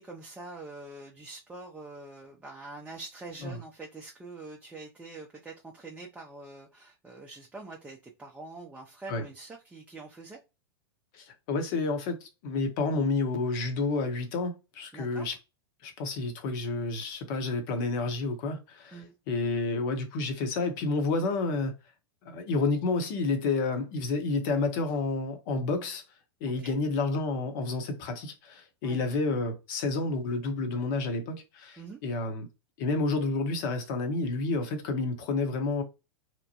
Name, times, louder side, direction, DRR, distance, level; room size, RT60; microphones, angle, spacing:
voice 1, 0.0-10.4 14.9-15.3 18.9-19.1 26.6-26.8 28.8-29.0 31.8-32.0, right 3 dB, 10° right, 0.5 m, -45 dB
voice 2, 11.1-15.4 15.8-19.0 19.3-21.7 22.2-26.0 26.4-32.5 32.8-35.8, left 3 dB, 50° left, 0.9 m, -30 dB
2.9 x 2.1 x 2.8 m
hypercardioid pair, 95°, 13 cm